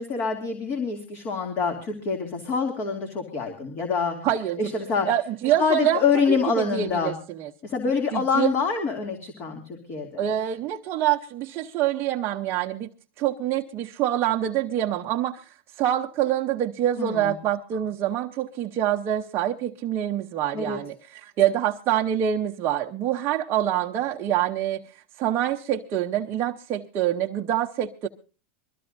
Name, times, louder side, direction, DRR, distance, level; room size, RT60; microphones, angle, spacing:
voice 1, 0.0-4.2 4.6-5.1 5.6-7.1 7.6-10.2 17.0-17.3 20.5-20.8, left 5 dB, 40° left, 2.6 m, -26 dB
voice 2, 4.2-4.7 5.1-6.0 6.3-7.5 8.1-8.5 10.2-12.9 13.2-28.1, right 11 dB, 35° right, 0.8 m, -26 dB
23.5 x 14.0 x 2.6 m
supercardioid pair, 125°, 7 cm